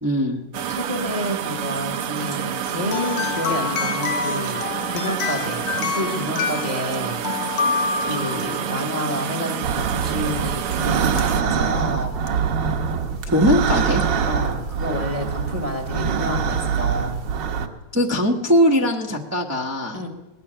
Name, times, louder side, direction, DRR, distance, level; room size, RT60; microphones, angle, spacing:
voice 1, 0.0-0.4 13.3-14.0 17.9-20.0, equal, 10° right, -3 dB, 0.7 m, -20 dB
sound 1, 0.5-11.4, right 9 dB, 85° right, 0.7 m, -28 dB
voice 2, 0.7-4.6 4.9-7.2 8.0-12.1 14.3-17.2 19.9-20.1, left 1 dB, 20° left, 2 dB, 1.2 m, -29 dB
sound 2, 2.9-8.8 11.2-11.3 12.3-12.4, left 6 dB, 80° left, 1.8 m, -27 dB
sound 3, 9.6-17.7, right 6 dB, 65° right, 1.5 m, -24 dB
19.5 x 6.9 x 9.9 m, 1.2 s
omnidirectional pair, 2.3 m